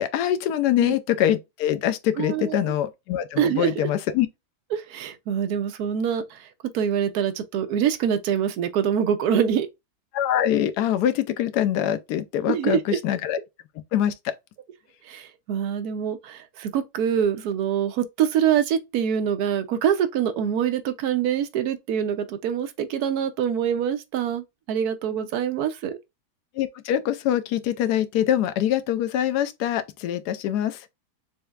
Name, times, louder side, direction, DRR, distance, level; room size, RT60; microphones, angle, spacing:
voice 1, 0.0-4.3 10.1-13.4 13.9-14.3 26.6-30.8, left 11 dB, 75° left, 1.1 m, -24 dB
voice 2, 2.2-2.7 3.4-3.9 4.7-6.5 6.7-9.7 12.5-13.0 15.0-26.0, right 8 dB, 70° right, 1.1 m, -25 dB
4.2 x 3.5 x 2.3 m
omnidirectional pair, 1.8 m